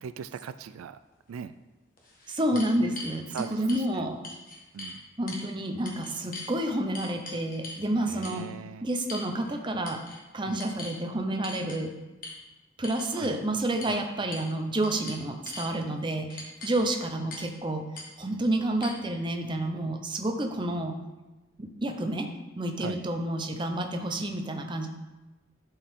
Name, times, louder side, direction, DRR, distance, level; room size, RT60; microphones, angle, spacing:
voice 1, 0.0-1.0 1.3-1.5 2.5-3.0 3.3-4.1 4.7-5.0 8.1-8.9 10.5-10.6 13.2-13.3 13.9-14.0 22.8-23.0, right 7 dB, 85° right, 12 dB, 0.3 m, -39 dB
sound 1, 1.3-1.4 2.0-3.9 4.2-5.0 5.3-5.5 5.9-6.5 6.9-7.8 8.2-8.4 9.1-9.6 9.9-10.2 10.6-11.0 11.4-11.8 12.2-12.4 12.8-13.3 13.8-14.0 14.3-14.5 14.8-15.7 16.3-16.8 17.3-17.5 18.0-18.1 18.8-18.9, left 2 dB, 40° left, 1.3 m, -41 dB
voice 2, 2.3-3.2 3.5-4.2 5.2-8.5 8.8-10.0 10.3-11.9 12.8-17.8 18.2-21.0 21.6-22.3 22.6-24.9, right 1 dB, 20° right, 4 dB, 0.6 m, -29 dB
12.0 x 4.6 x 3.6 m, 1.1 s
head